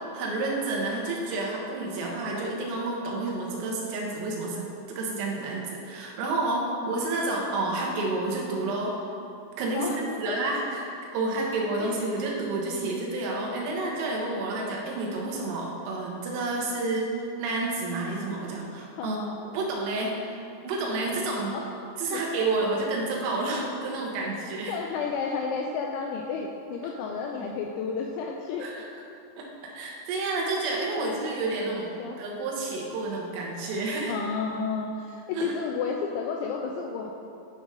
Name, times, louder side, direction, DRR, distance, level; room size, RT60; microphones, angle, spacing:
voice 1, 0.1-9.0 9.6-9.9 10.2-10.9 11.1-17.1 17.4-21.6 22.0-24.8 28.6-28.9 29.4-29.5 29.7-31.9 32.2-34.2 35.3-35.5, right 2 dB, 90° right, -2 dB, 3.9 m, -30 dB
voice 2, 6.8-7.3 9.7-10.4 11.8-12.0 19.0-19.4 21.5-21.7 22.1-22.2 24.7-28.7 31.0-32.2 34.1-37.3, left 5 dB, 85° left, 1 dB, 2.7 m, -32 dB
11.0 x 3.7 x 5.4 m, 2.6 s
omnidirectional pair, 5.8 m